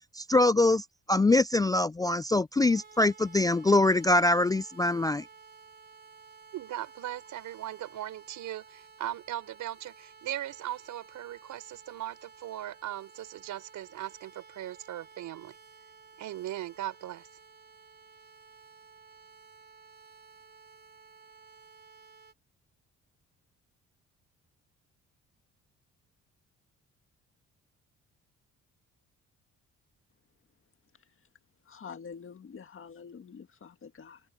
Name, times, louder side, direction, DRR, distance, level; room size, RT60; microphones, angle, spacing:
voice 1, 0.1-5.3, left 2 dB, 15° left, 0.3 m, -24 dB
sound 1, 2.5-22.3, right 5 dB, 35° right, 4.6 m, -54 dB
voice 2, 6.5-15.6 16.2-17.3, right 13 dB, 80° right, 6.0 m, -39 dB
voice 3, 31.7-34.2, left 6 dB, 45° left, 1.9 m, -46 dB
open air
cardioid pair, 90°, 30 cm